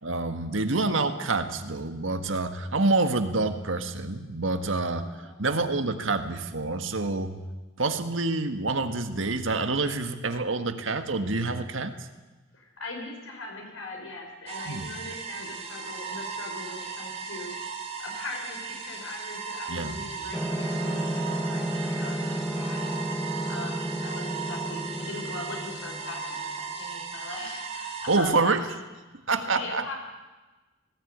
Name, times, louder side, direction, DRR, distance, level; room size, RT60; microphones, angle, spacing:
voice 1, 0.0-7.4 7.8-11.9 14.7-14.9 19.7-20.3 28.1-28.6 29.3-29.8, right 3 dB, 70° right, 8 dB, 1.7 m, -27 dB
voice 2, 5.2-5.6 12.5-22.8 23.2-28.8 29.3-30.0, left 2 dB, 75° left, 2 dB, 5.7 m, -41 dB
sound 1, 14.5-28.2, right 5 dB, 30° right, 2.9 m, -37 dB
sound 2, 20.3-26.6, right 1 dB, ahead, 1.6 m, -32 dB
18.5 x 16.5 x 9.5 m, 1.2 s
head